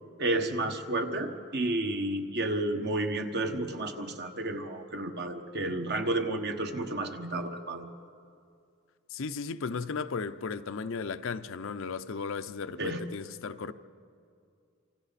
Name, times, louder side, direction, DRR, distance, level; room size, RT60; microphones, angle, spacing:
voice 1, 0.2-7.9 12.8-13.0, right 2 dB, 50° right, 1.3 m, -31 dB
voice 2, 9.1-13.7, left 5 dB, 65° left, 0.6 m, -35 dB
27.5 x 25.5 x 4.1 m
head